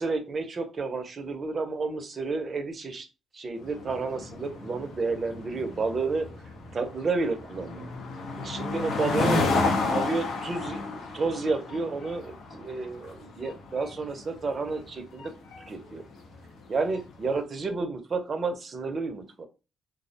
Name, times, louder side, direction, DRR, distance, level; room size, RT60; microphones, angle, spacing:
voice 1, 0.0-3.1 3.3-6.3 6.7-7.9 8.4-9.5 9.7-15.3 15.7-16.0 16.7-19.5, right 3 dB, 40° right, 7 dB, 0.5 m, -31 dB
sound 1, 3.6-17.1, left 3 dB, 75° left, 0.6 m, -32 dB
2.3 x 2.0 x 2.7 m, 0.30 s
cardioid pair, 90°, 0 cm